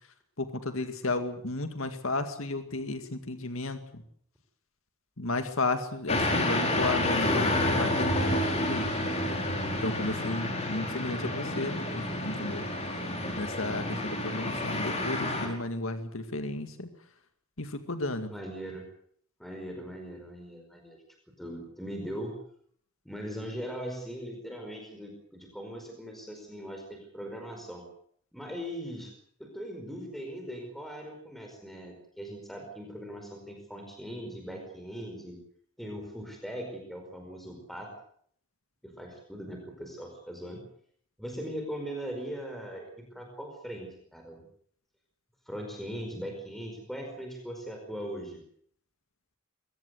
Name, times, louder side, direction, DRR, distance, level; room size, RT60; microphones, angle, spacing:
voice 1, 0.4-4.0 5.2-8.9 9.8-12.7 13.4-16.9 17.6-18.3, left 2 dB, 65° left, 8 dB, 2.1 m, -33 dB
sound 1, 6.1-15.5, left 1 dB, 30° left, 5.6 m, -29 dB
voice 2, 18.3-18.9 19.4-21.0 21.4-22.4 23.0-27.8 28.3-29.1 29.4-35.4 35.8-37.9 38.8-40.6 41.2-44.5 45.5-48.4, equal, ahead, 3 dB, 4.9 m, -40 dB
23.0 x 19.5 x 8.0 m, 0.63 s
head